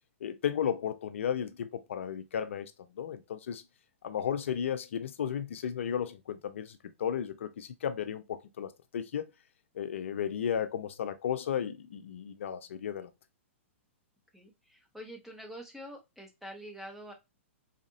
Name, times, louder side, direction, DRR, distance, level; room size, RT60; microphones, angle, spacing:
voice 1, 0.2-2.7 3.0-3.6 4.0-9.3 9.8-13.1, left 8 dB, 70° left, 0.6 m, -34 dB
voice 2, 14.3-17.1, equal, 5° right, 1.1 m, -46 dB
4.2 x 2.6 x 2.6 m
hypercardioid pair, 125°, 7 cm